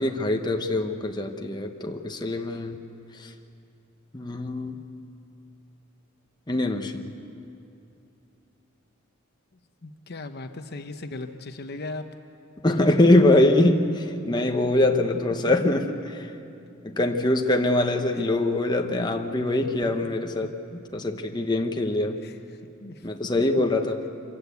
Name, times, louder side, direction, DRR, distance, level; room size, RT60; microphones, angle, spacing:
voice 1, 0.0-2.8 3.1-3.3 4.1-4.7 6.5-7.1 12.6-16.3 16.8-22.2 23.0-24.0, left 1 dB, 20° left, 4 dB, 1.0 m, -23 dB
voice 2, 9.8-12.1 15.5-15.6 22.2-22.4 22.8-23.1, left 2 dB, 55° left, 7 dB, 0.9 m, -37 dB
25.5 x 15.5 x 8.2 m, 2.7 s
head